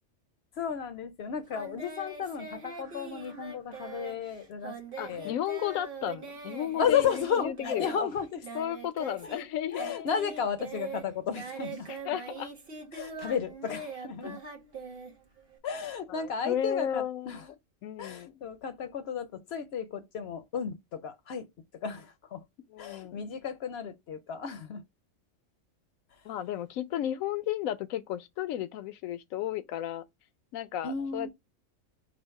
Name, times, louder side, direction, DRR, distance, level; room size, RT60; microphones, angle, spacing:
voice 1, 0.6-4.8 5.1-5.3 6.8-8.4 9.2-9.3 9.7-12.0 12.9-14.4 15.6-17.5 18.0-21.5 21.7-22.4 22.8-24.8 26.1-26.2 30.8-31.3, left 7 dB, 60° left, 0.7 m, -33 dB
Singing, 1.5-9.5 9.7-15.6, right 3 dB, 50° right, 1.2 m, -42 dB
voice 2, 5.0-8.1 8.5-10.1 11.9-12.5 14.2-14.3 16.1-17.3 17.8-18.4 22.7-23.3 26.2-30.1 30.5-31.3, left 10 dB, 90° left, 1.0 m, -34 dB
5.0 x 2.1 x 4.6 m
omnidirectional pair, 1.4 m